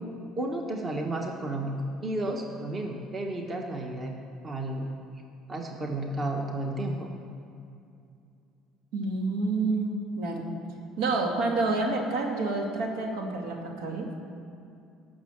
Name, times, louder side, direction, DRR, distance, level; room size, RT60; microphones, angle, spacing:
voice 1, 0.4-4.1 4.4-4.9 5.5-7.1, right 1 dB, 25° right, 2 dB, 1.1 m, -32 dB
voice 2, 8.9-10.5 11.0-14.1, right 3 dB, 85° right, 1 dB, 2.4 m, -28 dB
18.5 x 6.3 x 7.2 m, 2.5 s
cardioid pair, 160°, 0 cm